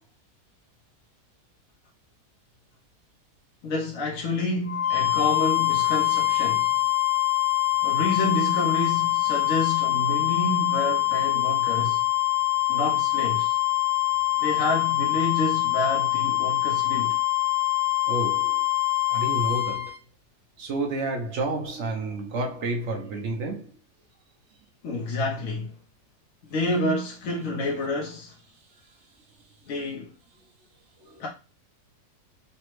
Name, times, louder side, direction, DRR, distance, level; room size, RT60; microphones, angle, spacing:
voice 1, 3.6-6.7 7.8-12.0 12.7-13.6 14.4-17.2 24.8-25.7 26.5-28.3 29.7-30.1 31.2-31.3, left 2 dB, 65° left, 0.9 m, -28 dB
sound 1, 4.7-20.0, left 15 dB, 50° right, 1.2 m, -24 dB
voice 2, 18.1-18.7 19.1-19.9 20.6-23.7 31.1-31.2, right 2 dB, 75° right, 0.6 m, -30 dB
3.2 x 2.0 x 3.0 m
omnidirectional pair, 1.7 m